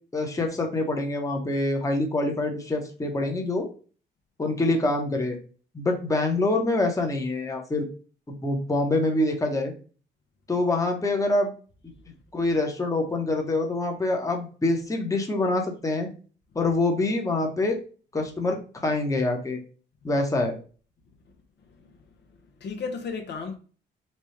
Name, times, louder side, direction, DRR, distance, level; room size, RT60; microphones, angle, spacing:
voice 1, 0.1-3.7 4.4-5.4 5.7-7.9 8.4-9.7 10.5-11.5 12.3-16.1 16.5-17.8 18.1-18.6 18.8-19.6 20.0-20.6, left 2 dB, 15° left, 0.9 m, -25 dB
voice 2, 21.6-23.5, left 5 dB, 60° left, 0.8 m, -36 dB
4.2 x 2.3 x 3.2 m
cardioid pair, 90°, 20 cm